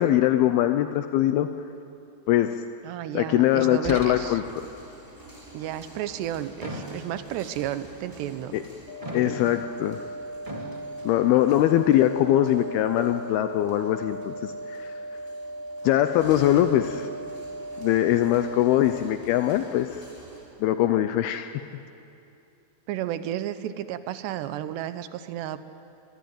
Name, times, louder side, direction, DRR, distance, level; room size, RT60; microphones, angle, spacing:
voice 1, 0.0-1.5 2.3-2.5 3.1-4.4 8.5-8.6 9.1-10.0 11.0-14.9 15.8-17.1 17.8-20.0 20.6-21.5, left 12 dB, 80° left, 9 dB, 2.3 m, -22 dB
voice 2, 2.8-4.4 5.5-8.6 9.3-9.4 16.5-16.7 22.9-25.6, right 12 dB, 80° right, 12 dB, 2.9 m, -32 dB
sound 1, 3.8-4.6 6.6-7.3 9.0-9.7 10.5-10.8, right 1 dB, 55° right, 0.3 m, -37 dB
sound 2, 4.1-20.5, equal, 5° right, 3.7 m, -50 dB
sound 3, 8.9-18.9, right 2 dB, 40° left, 5.0 m, -38 dB
24.0 x 20.5 x 9.3 m, 2.7 s
omnidirectional pair, 5.1 m